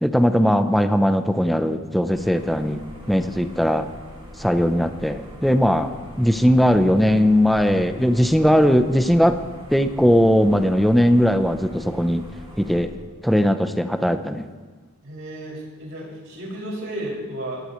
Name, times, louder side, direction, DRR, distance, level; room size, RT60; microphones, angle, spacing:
voice 1, 0.0-2.8 3.1-3.9 4.4-9.4 9.7-12.2 12.6-12.9 13.2-14.5, equal, ahead, 7 dB, 0.7 m, -19 dB
sound 1, 2.1-12.8, equal, 25° right, 5.1 m, -42 dB
voice 2, 15.0-17.6, right 1 dB, 70° right, -4 dB, 6.1 m, -33 dB
23.0 x 18.5 x 3.2 m, 1.4 s
head